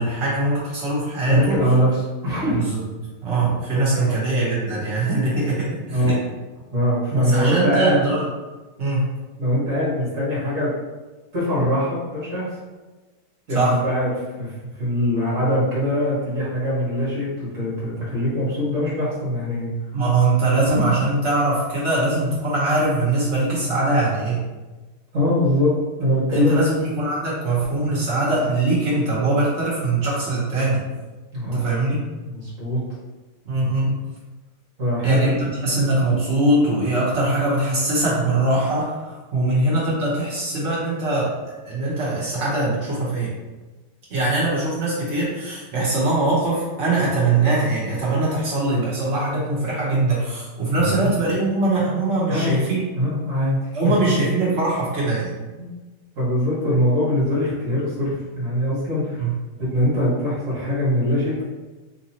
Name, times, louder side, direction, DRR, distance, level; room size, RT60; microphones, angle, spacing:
voice 1, 0.0-1.7 2.5-2.8 3.2-6.2 7.1-8.3 8.8-9.1 13.5-13.8 19.9-24.4 26.3-30.8 31.4-32.0 33.4-34.0 35.0-41.3 41.6-43.3 44.1-52.8 53.7-55.4 59.2-59.3, right 2 dB, 60° right, -7 dB, 0.7 m, -22 dB
voice 2, 1.2-2.6 3.9-4.1 5.9-6.2 6.7-8.0 9.4-10.7 11.3-12.5 13.5-14.1 14.4-19.7 25.1-26.6 31.3-31.6 32.2-32.8 34.8-35.2 50.7-50.9 52.3-52.6 52.9-53.9 55.6-55.7 56.1-59.2 59.7-61.4, equal, 40° right, -7 dB, 1.6 m, -22 dB
3.8 x 2.9 x 2.7 m, 1.2 s
omnidirectional pair, 2.4 m